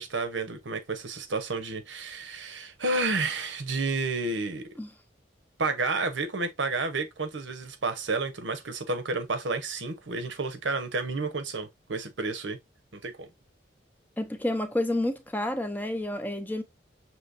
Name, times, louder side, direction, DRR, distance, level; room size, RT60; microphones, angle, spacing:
voice 1, 0.0-4.7 5.6-12.6 12.9-13.3, right 3 dB, 85° right, 0.9 m, -31 dB
voice 2, 14.2-16.6, left 1 dB, 10° left, 0.6 m, -29 dB
6.2 x 2.9 x 2.6 m
head